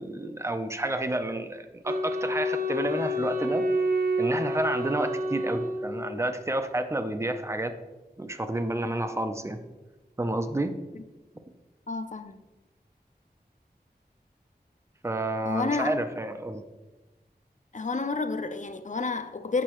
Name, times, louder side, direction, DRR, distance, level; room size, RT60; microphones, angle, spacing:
voice 1, 0.0-3.6 4.2-7.7 8.2-9.6 10.2-10.7 11.3-11.4 15.0-16.6, right 1 dB, 15° right, 0.6 m, -30 dB
Wind instrument woodwind instrument, 1.9-6.3, equal, 60° right, 0.7 m, -29 dB
voice 2, 11.9-12.4 15.4-15.9 17.7-19.6, left 3 dB, 45° left, 0.5 m, -30 dB
8.3 x 5.4 x 3.0 m
wide cardioid pair, 50°, 17 cm